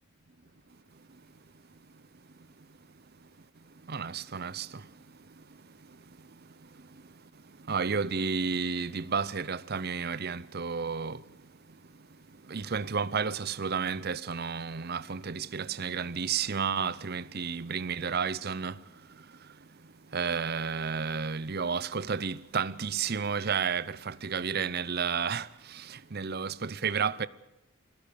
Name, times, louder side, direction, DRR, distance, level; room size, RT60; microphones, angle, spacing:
voice 1, 3.9-4.8 7.7-11.2 12.5-18.8 20.1-27.3, right 6 dB, 45° right, 0.7 m, -31 dB
21.5 x 17.5 x 8.5 m
head